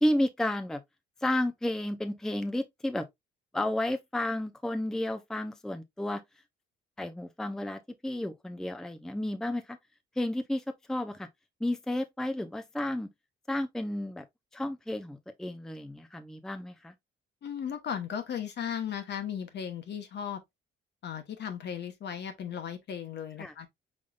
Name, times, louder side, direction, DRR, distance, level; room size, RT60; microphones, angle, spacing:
voice 1, 0.0-0.8 1.2-3.1 3.5-6.2 7.0-9.8 10.2-10.6 10.9-11.3 11.6-13.1 13.5-14.2 14.5-16.9 23.4-23.5, left 1 dB, 5° left, 0.5 m, -32 dB
voice 2, 17.4-20.4 21.0-23.7, left 8 dB, 60° left, 1.1 m, -36 dB
5.3 x 3.6 x 2.4 m
cardioid pair, 90°, 20 cm